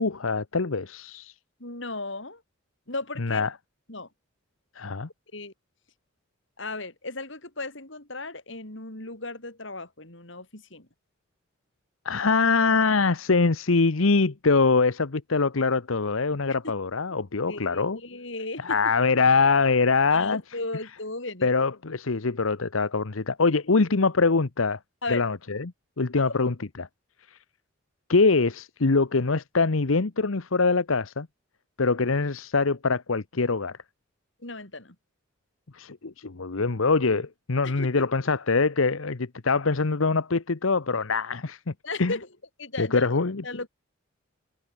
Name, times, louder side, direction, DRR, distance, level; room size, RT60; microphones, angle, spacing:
voice 1, 0.0-1.3 3.2-3.5 4.8-5.1 12.0-18.0 18.6-20.4 21.4-24.8 25.1-26.9 27.3-27.4 28.1-31.3 31.8-33.8 35.7-41.7 42.0-42.1 42.8-43.4, left 4 dB, 85° left, 1.0 m, -24 dB
voice 2, 1.6-2.4 2.9-3.4 3.9-4.1 5.3-5.5 6.6-10.9 17.5-18.8 20.1-21.5 25.0-25.2 26.2-26.3 34.4-35.0 37.6-38.0 41.8-42.3 42.6-43.1 43.4-43.7, left 2 dB, 65° left, 5.1 m, -35 dB
head